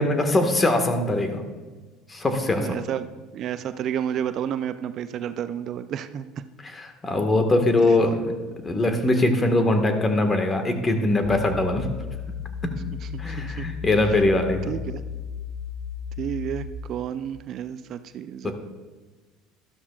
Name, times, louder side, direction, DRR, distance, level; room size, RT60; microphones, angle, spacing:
voice 1, 0.0-1.4 2.1-2.8 6.6-8.3 8.6-11.9 12.6-12.7 13.2-14.7 18.4-18.5, left 2 dB, 25° left, 6 dB, 1.6 m, -22 dB
voice 2, 2.5-3.1 3.3-6.3 13.0-13.7 14.7-15.0 16.2-18.5, right 9 dB, 55° right, 12 dB, 0.5 m, -31 dB
sound 1, 11.3-16.7, left 7 dB, 45° left, 1.5 m, -34 dB
12.5 x 12.5 x 2.4 m, 1.3 s
hypercardioid pair, 75°, 0 cm